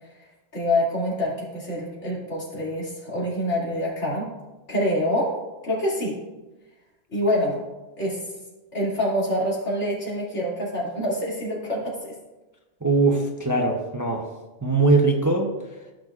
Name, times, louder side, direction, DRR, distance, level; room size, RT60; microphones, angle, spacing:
voice 1, 0.5-4.3 4.7-5.3 5.6-6.2 7.1-7.6 8.0-8.2 8.7-12.1, left 1 dB, 75° left, -5 dB, 2.9 m, -26 dB
voice 2, 12.8-14.3 14.6-15.5, right 3 dB, 20° right, 1 dB, 0.7 m, -21 dB
15.0 x 6.5 x 2.4 m, 1.1 s
omnidirectional pair, 1.2 m